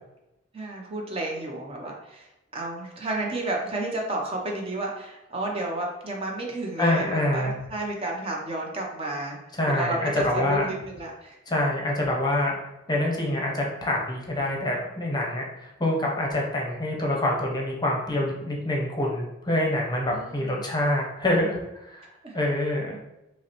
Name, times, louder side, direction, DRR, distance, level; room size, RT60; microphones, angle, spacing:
voice 1, 0.5-9.4 9.7-11.4 20.1-20.6 22.2-22.3, right 2 dB, 30° right, 0 dB, 0.6 m, -31 dB
voice 2, 6.8-7.5 9.6-10.7 11.5-12.5 12.9-21.6 21.8-22.1 22.3-23.0, left 1 dB, 20° left, -1 dB, 0.7 m, -26 dB
5.3 x 2.0 x 2.9 m, 0.91 s
head